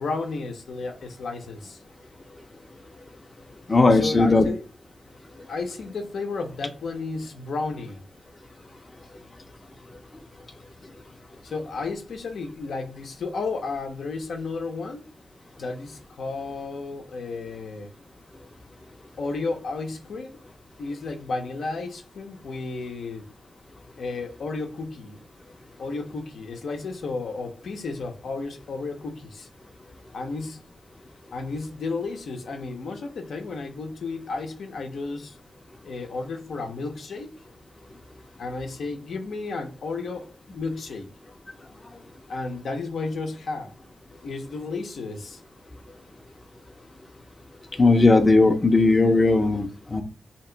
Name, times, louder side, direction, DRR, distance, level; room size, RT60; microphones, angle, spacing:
voice 1, 0.0-1.8 3.9-4.6 5.5-8.0 11.4-15.1 15.6-17.9 19.2-20.4 20.8-23.3 24.0-25.2 25.8-29.5 30.1-30.6 31.3-35.4 35.8-37.3 38.4-41.1 42.3-43.7 44.2-45.4, left 3 dB, 85° left, 0.7 m, -33 dB
voice 2, 3.7-4.5 47.8-50.0, left 3 dB, 25° left, 0.5 m, -18 dB
2.9 x 2.9 x 4.4 m
wide cardioid pair, 130°, 0 cm